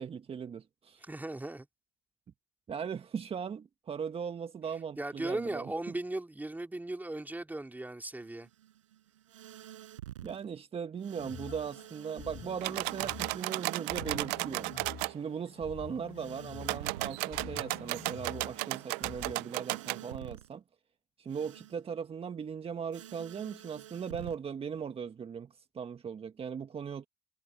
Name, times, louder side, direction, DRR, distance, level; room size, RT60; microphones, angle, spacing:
voice 1, 0.0-1.1 2.7-5.7 10.2-14.7 15.0-20.6 21.2-27.1, right 7 dB, 40° right, 1.6 m, -39 dB
voice 2, 1.0-1.7 5.0-8.5, right 2 dB, 10° right, 3.5 m, -37 dB
sound 1, 8.2-10.4 11.0-17.3 17.8-20.5 21.3-21.8 22.9-24.4, right 12 dB, 85° right, 5.8 m, -49 dB
sound 2, 11.2-19.4, left 10 dB, 55° left, 5.2 m, -49 dB
sound 3, 12.6-15.1 16.6-20.0, right 29 dB, 70° right, 0.5 m, -35 dB
hypercardioid pair, 60°, 16 cm